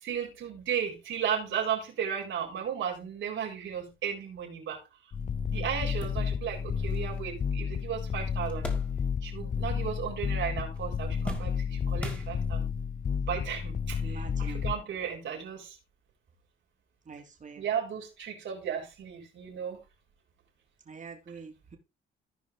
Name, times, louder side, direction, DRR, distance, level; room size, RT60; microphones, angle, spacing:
voice 1, 0.0-4.8 5.5-8.7 9.2-12.7 13.2-15.8 17.6-19.8, right 8 dB, 75° right, 4.1 m, -35 dB
sound 1, 5.1-14.7, left 6 dB, 40° left, 0.7 m, -32 dB
sound 2, 5.2-5.3 5.7-9.5 9.7-10.4 10.7-12.8 13.6-13.7 15.0-15.1, left 1 dB, 5° left, 3.0 m, -41 dB
voice 2, 14.0-14.6 17.1-17.6 20.9-21.8, right 5 dB, 40° right, 2.9 m, -45 dB
15.0 x 5.1 x 3.7 m
cardioid pair, 90°, 20 cm